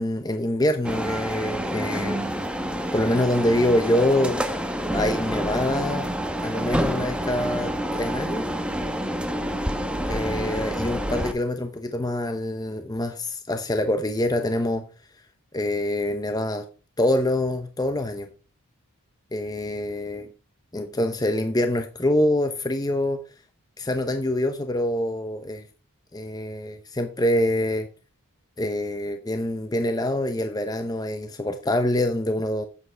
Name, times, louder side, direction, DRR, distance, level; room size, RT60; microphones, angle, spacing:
voice 1, 0.0-2.2 2.9-4.6 4.9-6.1 6.4-8.5 10.1-14.8 15.5-16.7 17.0-18.3 19.3-20.3 20.7-23.2 23.8-25.6 26.1-27.9 28.6-32.6, left 1 dB, 15° left, 0.7 m, -25 dB
sound 1, 0.8-11.3, equal, 5° right, 0.9 m, -28 dB
9.3 x 8.5 x 3.4 m
head